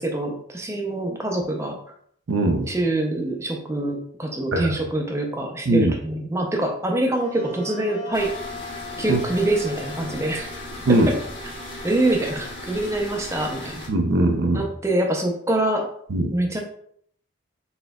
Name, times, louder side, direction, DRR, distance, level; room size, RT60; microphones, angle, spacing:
voice 1, 0.0-1.8 2.7-8.3 9.0-10.5 10.9-11.2 11.8-13.9 14.5-15.9 16.3-16.6, right 1 dB, 15° right, 2 dB, 0.5 m, -25 dB
voice 2, 2.3-2.7 4.5-4.8 5.7-5.9 9.1-9.2 10.9-11.1 13.9-14.6 16.1-16.3, right 2 dB, 70° right, 3 dB, 0.5 m, -20 dB
Wind instrument woodwind instrument, 7.2-14.6, left 4 dB, 35° left, 1.6 m, -41 dB
sound 1, 8.1-13.9, left 1 dB, 60° left, 1.4 m, -37 dB
4.2 x 3.7 x 2.3 m, 0.65 s
head